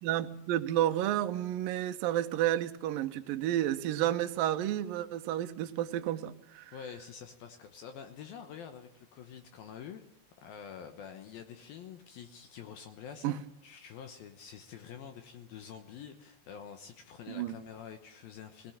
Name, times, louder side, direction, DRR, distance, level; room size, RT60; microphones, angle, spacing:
voice 1, 0.0-6.7 13.2-13.4 17.3-17.6, right 12 dB, 70° right, 8 dB, 2.4 m, -31 dB
voice 2, 6.7-10.1 10.4-18.7, left 8 dB, 70° left, 7 dB, 2.7 m, -47 dB
21.0 x 17.5 x 8.7 m, 0.78 s
omnidirectional pair, 4.8 m